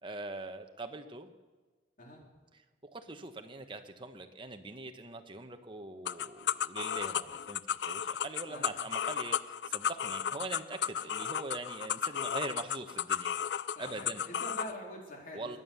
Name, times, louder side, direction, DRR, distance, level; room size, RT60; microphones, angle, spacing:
voice 1, 0.0-1.3 2.8-7.6 7.9-13.3 13.8-14.2 15.3-15.6, right 2 dB, 30° right, 7 dB, 1.1 m, -42 dB
sound 1, 6.0-14.7, left 8 dB, 70° left, 0.4 m, -34 dB
voice 2, 13.8-15.6, equal, 50° left, 0 dB, 3.6 m, -45 dB
22.5 x 9.1 x 6.9 m, 1.3 s
head